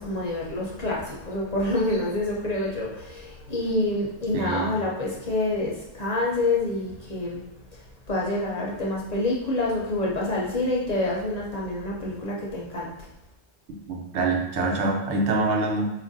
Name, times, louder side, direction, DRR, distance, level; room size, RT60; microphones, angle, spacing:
voice 1, 0.0-7.4 7.7-7.8 8.1-12.9, left 2 dB, 50° left, -4 dB, 0.5 m, -27 dB
voice 2, 4.3-4.6 13.9-15.9, right 3 dB, 85° right, 0 dB, 1.0 m, -25 dB
4.4 x 2.5 x 2.6 m, 0.93 s
omnidirectional pair, 1.1 m